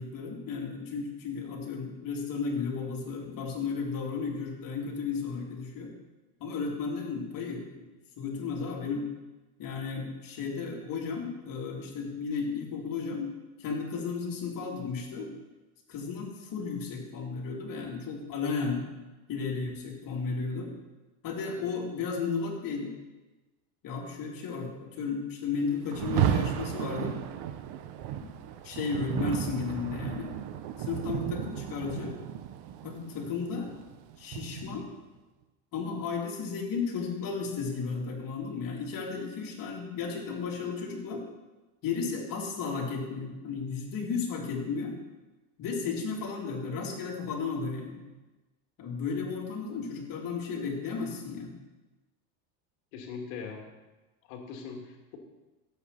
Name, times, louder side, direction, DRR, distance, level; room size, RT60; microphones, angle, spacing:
voice 1, 0.0-5.9 6.4-7.8 8.2-9.1 9.6-13.3 13.6-15.3 15.9-18.8 19.3-20.7 21.2-22.9 23.8-27.2 28.2-28.3 28.6-30.3 30.8-32.1 32.8-33.7 34.2-34.9 35.7-41.2 41.8-44.9 45.6-48.0 48.8-51.5, left 5 dB, 45° left, -1 dB, 3.4 m, -34 dB
Rain, 25.9-34.9, right 11 dB, 55° right, 1.0 m, -33 dB
voice 2, 52.9-53.7 54.3-55.2, left 5 dB, 65° left, 2 dB, 2.8 m, -41 dB
16.5 x 8.2 x 4.3 m, 1.1 s
supercardioid pair, 110°, 47 cm